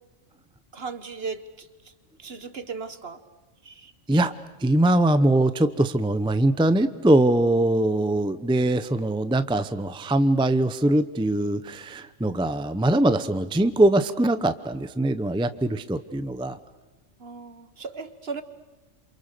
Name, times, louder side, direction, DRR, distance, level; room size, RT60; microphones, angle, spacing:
voice 1, 0.7-1.9 2.2-3.2 3.6-3.9 17.2-18.4, right 4 dB, 50° right, 11 dB, 1.5 m, -37 dB
voice 2, 4.6-16.6, right 1 dB, 5° right, 12 dB, 0.7 m, -22 dB
28.0 x 27.5 x 6.7 m, 1.2 s
omnidirectional pair, 1.3 m